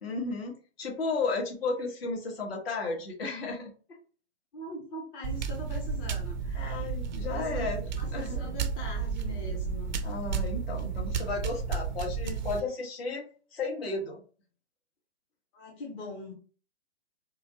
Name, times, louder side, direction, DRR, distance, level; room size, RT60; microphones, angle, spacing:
voice 1, 0.0-3.7 6.5-7.8 8.1-8.4 10.0-14.2, left 3 dB, 60° left, 0 dB, 1.5 m, -34 dB
voice 2, 4.5-6.9 7.2-7.7 8.0-10.0 15.5-16.3, left 2 dB, 15° left, -1 dB, 0.6 m, -42 dB
sound 1, 5.2-12.6, right 6 dB, 40° right, 0.5 m, -32 dB
4.5 x 2.1 x 2.8 m, 0.39 s
figure-of-eight pair, 125°, 35 cm